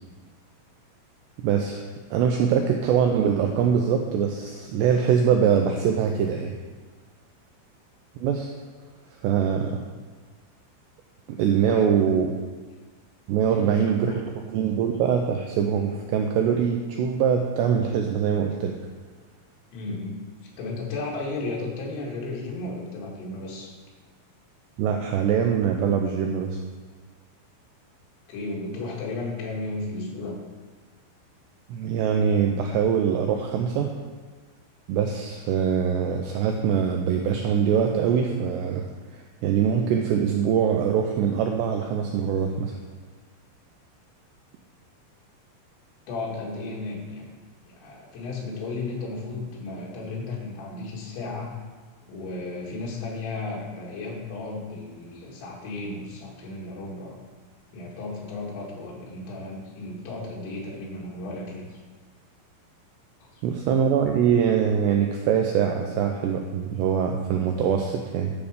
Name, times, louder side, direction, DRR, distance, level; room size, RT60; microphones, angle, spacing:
voice 1, 1.4-1.8 2.1-6.5 8.2-8.5 9.2-9.8 11.3-12.3 13.3-18.8 24.8-26.6 31.7-34.0 34.9-38.8 39.1-42.8 63.4-68.3, right 7 dB, 90° right, 3 dB, 2.4 m, -23 dB
voice 2, 11.6-12.0 13.5-14.2 19.7-20.2 20.6-23.7 28.3-30.4 46.1-47.3 47.7-51.5 52.1-57.2 57.7-61.8 63.3-63.4, left 3 dB, 85° left, -3 dB, 4.8 m, -34 dB
11.0 x 7.1 x 5.2 m, 1.4 s
omnidirectional pair, 5.6 m